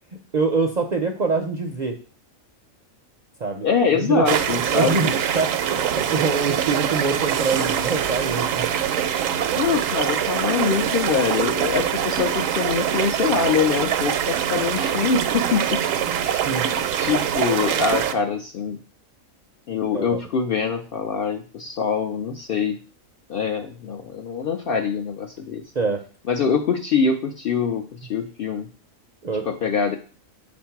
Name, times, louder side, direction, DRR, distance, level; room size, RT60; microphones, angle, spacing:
voice 1, 0.3-2.0 3.4-3.7 3.9-4.3 4.7-8.7 16.4-16.6 19.9-20.2 25.7-26.0 29.2-29.5, right 4 dB, 50° right, 3 dB, 0.5 m, -24 dB
voice 2, 3.6-5.0 9.6-15.8 16.2-16.4 17.0-18.8 19.7-22.8 23.3-25.6 26.3-28.7 29.4-30.0, left 6 dB, 60° left, 5 dB, 0.6 m, -24 dB
sound 1, 4.3-18.1, right 9 dB, 75° right, 0.9 m, -24 dB
7.1 x 2.6 x 5.7 m, 0.39 s
omnidirectional pair, 1.4 m